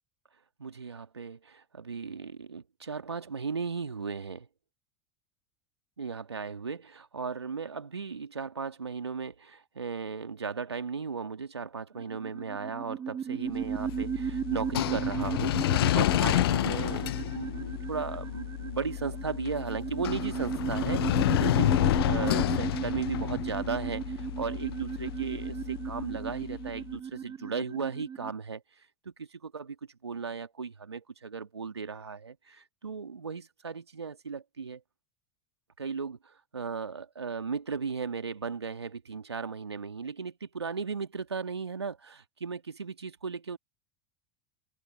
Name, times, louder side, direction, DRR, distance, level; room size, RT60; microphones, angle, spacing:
voice 1, 0.6-4.5 6.0-21.7 22.0-28.6 29.0-29.8 30.0-34.8 35.8-43.6, right 5 dB, 85° right, 2.5 m, -36 dB
sound 1, 12.0-28.3, right 7 dB, 30° right, 1.5 m, -35 dB
sound 2, 13.6-26.7, left 14 dB, 70° left, 0.8 m, -30 dB
figure-of-eight pair, 75°, 13 cm